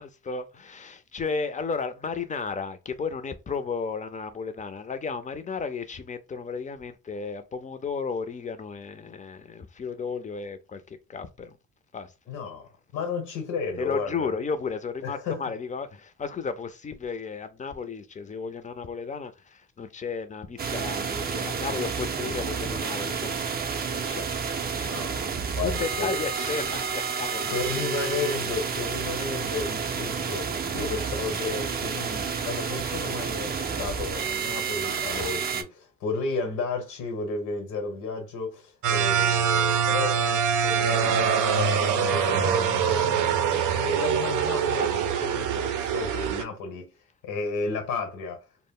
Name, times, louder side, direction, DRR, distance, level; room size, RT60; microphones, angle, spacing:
voice 1, 0.0-11.6 11.9-12.1 13.8-23.4 23.9-24.3 25.4-27.6 28.5-28.6 30.7-30.9, left 5 dB, 25° left, 0.4 m, -34 dB
voice 2, 12.3-14.4 15.0-15.4 24.8-25.2 25.6-26.2 27.5-46.9 47.2-48.4, left 4 dB, 75° left, 1.0 m, -33 dB
sound 1, 20.6-35.6, right 6 dB, 30° right, 0.4 m, -30 dB
sound 2, 38.8-46.4, right 7 dB, 90° right, 0.5 m, -24 dB
2.1 x 2.1 x 3.6 m
cardioid pair, 90°, 30 cm